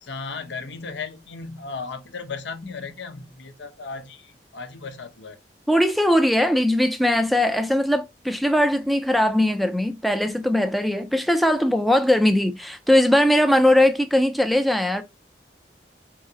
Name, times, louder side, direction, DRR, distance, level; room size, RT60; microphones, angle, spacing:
voice 1, 0.0-5.4, left 4 dB, 85° left, 0.7 m, -35 dB
voice 2, 5.7-15.0, left 1 dB, ahead, 0.3 m, -20 dB
4.7 x 3.8 x 2.7 m
head